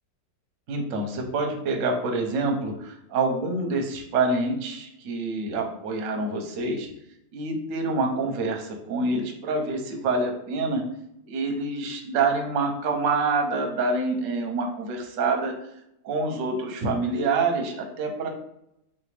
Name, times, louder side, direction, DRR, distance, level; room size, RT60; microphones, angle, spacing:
voice 1, 0.7-6.9 7.3-10.8 11.3-15.5 16.0-18.3, right 3 dB, 60° right, 3 dB, 0.9 m, -26 dB
3.9 x 3.4 x 3.2 m, 0.79 s
omnidirectional pair, 2.0 m